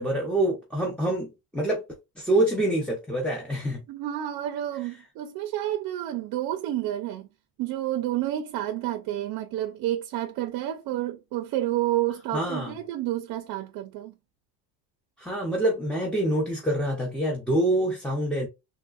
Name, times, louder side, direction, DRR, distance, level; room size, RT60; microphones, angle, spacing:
voice 1, 0.0-1.8 2.2-3.8 12.3-12.7 15.2-18.5, right 1 dB, 5° left, 0.4 m, -26 dB
voice 2, 3.9-7.3 7.6-14.1, right 13 dB, 55° right, 0.5 m, -30 dB
3.5 x 2.1 x 2.3 m
cardioid pair, 150°, 43 cm